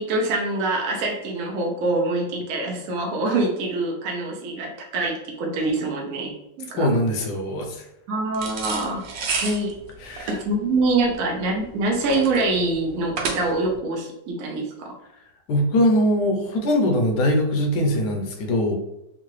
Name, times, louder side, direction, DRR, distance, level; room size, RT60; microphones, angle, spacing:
voice 1, 0.0-6.9 8.1-9.1 9.4-9.8 10.3-15.0, right 2 dB, 70° right, 0 dB, 0.8 m, -25 dB
voice 2, 6.8-7.8 10.0-10.4 15.5-18.7, equal, 70° left, 2 dB, 1.2 m, -22 dB
sound 1, 8.3-13.8, right 4 dB, 90° right, 1.4 m, -31 dB
3.7 x 2.3 x 3.0 m, 0.88 s
omnidirectional pair, 1.9 m